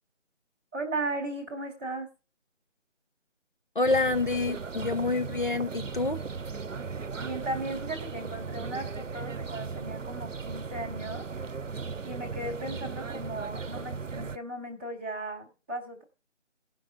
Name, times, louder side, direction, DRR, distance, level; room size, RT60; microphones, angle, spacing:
voice 1, 0.7-2.1 7.2-11.3 12.0-16.0, right 2 dB, 10° right, 1.3 m, -36 dB
voice 2, 3.7-6.2, left 3 dB, 40° left, 0.8 m, -27 dB
sound 1, 3.8-14.4, right 5 dB, 90° right, 0.7 m, -37 dB
17.0 x 5.9 x 4.3 m
figure-of-eight pair, 160°, 37 cm